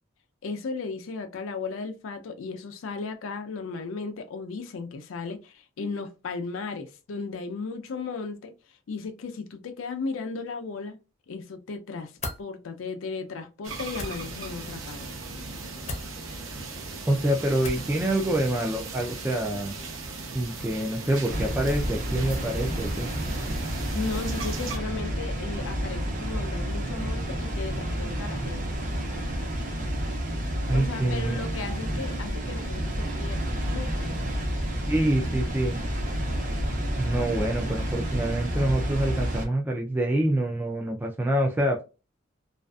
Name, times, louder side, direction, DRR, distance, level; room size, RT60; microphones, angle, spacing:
voice 1, 0.4-8.5 8.9-11.0 11.3-12.1 12.4-15.1 23.9-28.7 30.7-34.3, left 4 dB, 85° left, 0.4 m, -35 dB
sound 1, 12.2-12.4 13.9-14.1 15.8-16.1 17.6-17.9, left 2 dB, 35° left, 0.6 m, -34 dB
sound 2, 13.6-24.8, right 3 dB, 85° right, 0.8 m, -38 dB
voice 2, 17.1-19.8 20.3-23.1 30.7-31.4 34.9-35.8 37.0-41.8, right 1 dB, 10° right, 0.3 m, -26 dB
Water, 21.3-39.5, equal, 40° right, 0.8 m, -30 dB
2.5 x 2.4 x 2.2 m
head